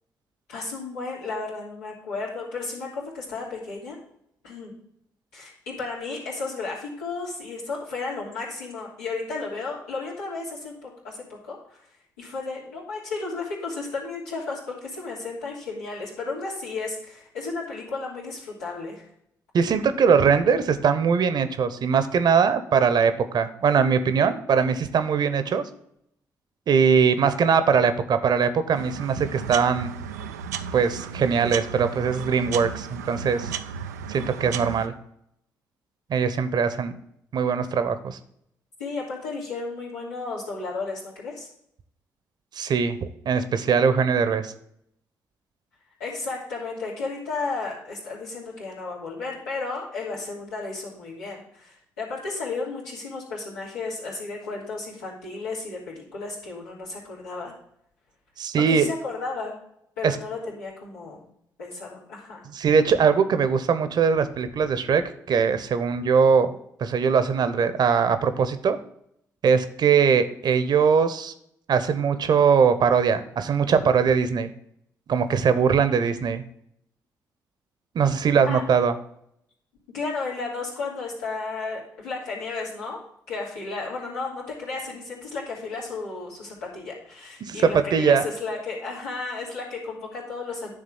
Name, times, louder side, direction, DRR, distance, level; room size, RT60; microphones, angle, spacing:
voice 1, 0.5-4.0 4.4-4.7 5.3-11.8 12.2-19.1 38.8-41.5 46.0-57.5 58.6-59.5 60.0-61.2 61.6-62.4 78.4-78.6 79.9-83.0 83.3-90.7, left 3 dB, 85° left, -7 dB, 3.0 m, -33 dB
voice 2, 19.5-25.6 26.7-29.9 30.7-33.5 34.1-34.9 36.1-36.9 37.3-38.2 42.6-44.5 58.4-58.9 60.0-60.2 62.5-66.5 66.8-68.8 69.4-71.3 71.7-74.5 75.1-76.4 77.9-78.9 87.4-88.2, right 6 dB, 55° right, 11 dB, 0.9 m, -21 dB
sound 1, 28.7-34.9, right 7 dB, 85° right, 0.4 m, -34 dB
10.0 x 3.6 x 7.2 m, 0.73 s
hypercardioid pair, 40°, 9 cm